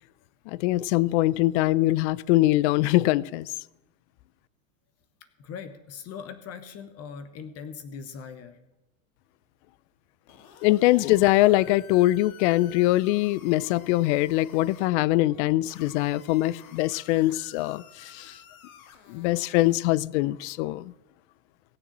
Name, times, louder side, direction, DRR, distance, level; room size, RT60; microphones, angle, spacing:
voice 1, 0.5-3.5 10.6-18.4 19.1-20.9, left 17 dB, 55° left, 0.5 m, -23 dB
voice 2, 5.4-8.6, left 6 dB, 35° left, 1.1 m, -40 dB
sound 1, 10.3-14.9 15.7-19.9, left 8 dB, 80° left, 2.0 m, -51 dB
17.0 x 7.2 x 7.2 m
supercardioid pair, 125°, 41 cm